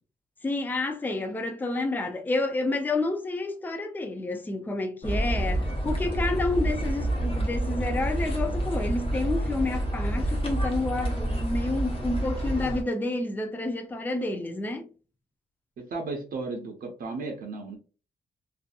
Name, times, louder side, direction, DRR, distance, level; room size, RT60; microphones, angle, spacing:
voice 1, 0.4-14.9, left 2 dB, 10° left, 0.4 m, -29 dB
sound 1, 5.0-12.8, right 1 dB, 35° left, 0.9 m, -28 dB
voice 2, 15.8-17.8, right 3 dB, 70° right, 0.7 m, -34 dB
2.6 x 2.5 x 2.3 m
cardioid pair, 115°, 16 cm